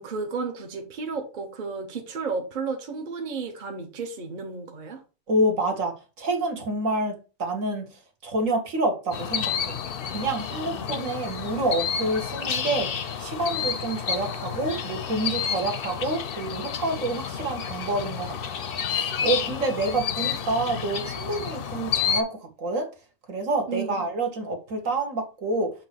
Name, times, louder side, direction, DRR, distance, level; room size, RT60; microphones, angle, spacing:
voice 1, 0.0-5.0 10.5-11.2 19.8-20.2 23.7-24.1, right 4 dB, 40° right, 1.1 m, -33 dB
voice 2, 5.3-7.9 8.2-9.8 10.1-12.9 13.2-18.6 18.9-22.9 23.3-25.7, right 2 dB, 65° right, 1.7 m, -28 dB
sound 1, 9.1-22.2, left 7 dB, 55° left, 0.7 m, -30 dB
7.2 x 2.9 x 5.8 m
omnidirectional pair, 1.5 m